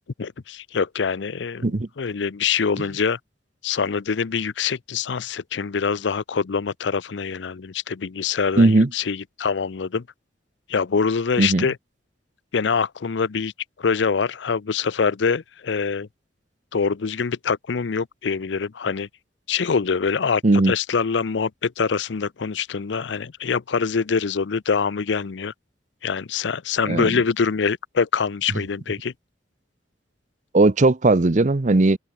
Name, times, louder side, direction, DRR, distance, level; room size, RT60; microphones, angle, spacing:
voice 1, 0.2-1.6 2.0-3.2 3.6-10.0 10.7-11.8 12.5-13.5 13.8-16.1 16.7-19.1 19.5-25.5 26.0-29.1, left 5 dB, 85° left, 0.6 m, -24 dB
voice 2, 8.6-8.9 11.4-11.6 20.4-20.7 26.9-27.1 30.5-32.0, right 2 dB, 45° right, 0.8 m, -17 dB
head